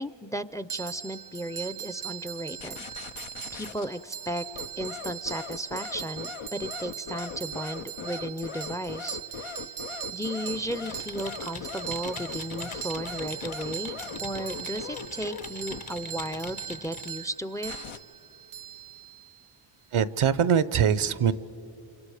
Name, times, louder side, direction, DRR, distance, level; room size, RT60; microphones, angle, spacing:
voice 1, 0.0-2.9 3.5-4.5 4.8-9.7 10.1-17.7, equal, 5° left, 15 dB, 0.5 m, -35 dB
sound 1, 0.7-19.5, right 11 dB, 45° right, 0.4 m, -40 dB
sound 2, 2.6-3.9 4.5-15.8 17.6-18.0, left 7 dB, 80° left, 0.8 m, -39 dB
Computer keyboard, 10.4-17.2, left 4 dB, 50° left, 1.2 m, -43 dB
voice 2, 19.9-21.3, right 8 dB, 85° right, 16 dB, 0.7 m, -23 dB
29.0 x 27.5 x 4.9 m, 2.9 s
wide cardioid pair, 65°, 49 cm